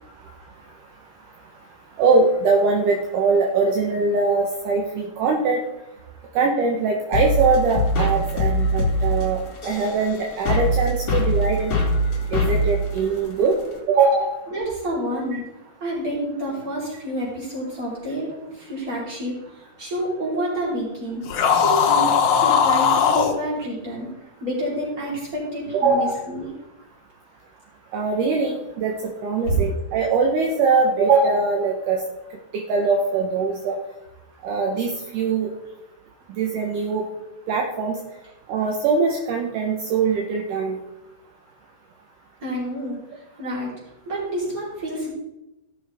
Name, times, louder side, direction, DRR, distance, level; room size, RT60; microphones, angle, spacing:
voice 1, 2.0-5.6 6.3-9.4 9.6-11.7 12.3-13.6 13.9-14.3 25.7-26.1 27.9-28.9 29.2-32.0 32.5-33.8 34.4-35.5 36.4-37.0 37.5-37.9 38.5-40.8, right 4 dB, 75° right, 0 dB, 2.4 m, -21 dB
sound 1, 7.1-13.8, equal, 45° left, 2.8 m, -23 dB
voice 2, 14.5-15.4 15.8-18.3 18.6-19.4 19.8-21.2 21.6-22.1 22.4-24.1 24.4-26.5 29.4-29.6 42.4-43.0 43.4-43.7 44.1-45.1, equal, 25° right, -6 dB, 3.9 m, -28 dB
sound 2, 21.3-23.4, left 7 dB, 70° left, 2.4 m, -18 dB
15.0 x 6.2 x 3.4 m, 0.94 s
omnidirectional pair, 3.9 m